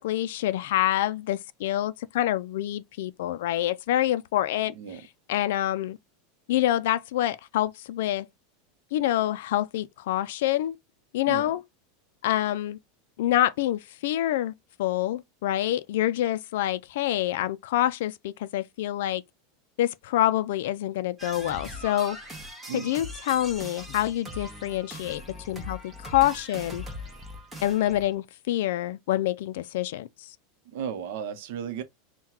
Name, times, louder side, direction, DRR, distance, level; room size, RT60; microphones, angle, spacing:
voice 1, 0.0-6.0 6.5-8.3 8.9-10.8 11.1-11.6 12.2-12.8 13.2-14.5 14.8-19.2 19.8-22.2 22.7-26.8 27.6-30.3, left 13 dB, 65° left, 0.3 m, -27 dB
sound 1, 21.2-28.1, left 1 dB, 10° right, 0.9 m, -40 dB
voice 2, 30.7-31.8, right 8 dB, 55° right, 0.7 m, -34 dB
5.6 x 2.2 x 2.9 m
supercardioid pair, 170°, 0 cm